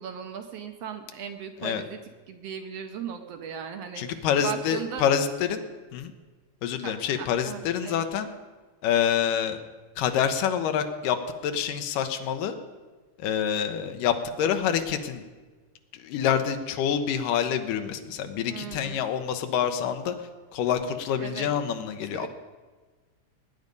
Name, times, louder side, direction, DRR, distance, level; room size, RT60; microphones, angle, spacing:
voice 1, 0.0-2.0 2.3-5.0 6.8-8.0 18.5-19.0 21.1-21.5 22.1-22.3, right 7 dB, 70° right, 7 dB, 1.5 m, -37 dB
voice 2, 4.0-5.7 5.9-6.1 6.6-8.3 8.8-9.6 10.0-12.6 13.2-15.2 15.9-22.3, left 8 dB, 90° left, 7 dB, 2.5 m, -27 dB
20.0 x 9.5 x 5.3 m, 1.4 s
omnidirectional pair, 3.7 m